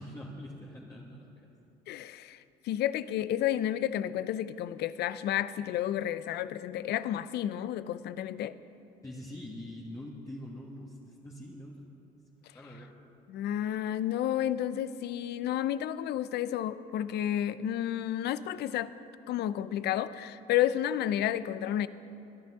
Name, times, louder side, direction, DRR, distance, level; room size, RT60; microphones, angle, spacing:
voice 1, 0.0-1.5 9.0-11.9 12.5-12.9, left 1 dB, 20° left, -4 dB, 1.5 m, -44 dB
voice 2, 1.9-8.5 13.3-18.9 19.3-21.9, left 11 dB, 65° left, 15 dB, 0.5 m, -31 dB
22.5 x 10.5 x 3.7 m, 2.7 s
supercardioid pair, 85°, 18 cm